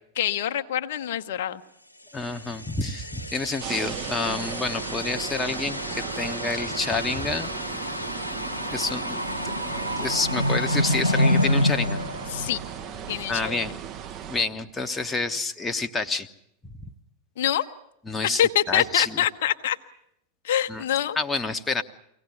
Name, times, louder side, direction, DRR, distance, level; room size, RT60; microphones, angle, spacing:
voice 1, 0.1-1.6 12.3-12.6 13.1-13.6 17.4-17.7 18.4-19.8 20.4-21.2, left 11 dB, 55° left, 7 dB, 0.9 m, -25 dB
voice 2, 2.1-7.5 8.7-9.2 9.6-9.7 10.0-12.0 13.3-13.7 14.3-16.3 16.8-16.9 18.1-18.4 18.7-19.2 20.7-20.8 21.1-21.8, left 3 dB, 15° left, 7 dB, 1.0 m, -28 dB
sound 1, 2.4-13.1, left 1 dB, 90° left, 1.0 m, -28 dB
sound 2, 3.6-14.5, right 9 dB, 35° right, 1.0 m, -37 dB
24.0 x 17.5 x 9.6 m, 0.79 s
figure-of-eight pair, 90°, 0 cm